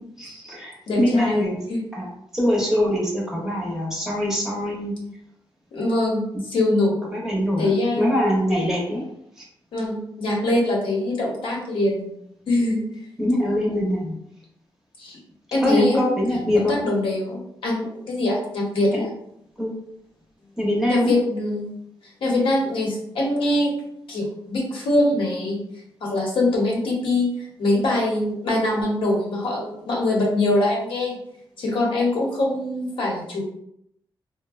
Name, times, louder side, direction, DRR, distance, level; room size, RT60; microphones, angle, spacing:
voice 1, 0.2-1.6 1.9-2.1 2.3-4.9 7.1-9.0 9.4-9.5 13.2-14.1 15.6-16.7 18.9-19.1 19.6-19.7 20.6-21.1, left 1 dB, 5° right, -4 dB, 0.7 m, -23 dB
voice 2, 0.9-1.8 5.7-7.1 7.6-8.1 9.7-12.0 12.5-12.8 15.0-15.2 15.5-16.2 16.5-19.1 20.9-21.7 22.2-23.7 24.1-25.6 26.0-31.2 31.6-33.4, left 1 dB, 75° left, -2 dB, 0.8 m, -23 dB
3.5 x 2.1 x 2.3 m, 0.75 s
wide cardioid pair, 165°, 9 cm